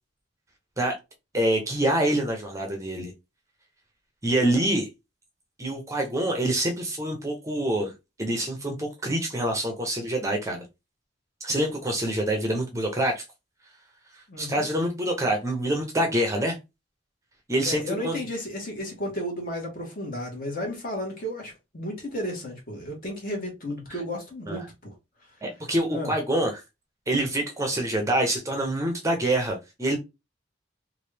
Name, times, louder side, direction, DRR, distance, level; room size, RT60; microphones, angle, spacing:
voice 1, 1.3-3.1 4.2-4.9 5.6-7.9 8.2-10.6 11.4-13.2 14.4-16.6 17.5-18.2 23.9-24.0 24.5-24.7 25.4-26.6 27.1-30.0, right 1 dB, 15° right, 0.6 m, -26 dB
voice 2, 14.3-14.7 17.6-24.9 25.9-26.1, left 1 dB, 50° left, 1.4 m, -33 dB
3.1 x 2.5 x 3.3 m
head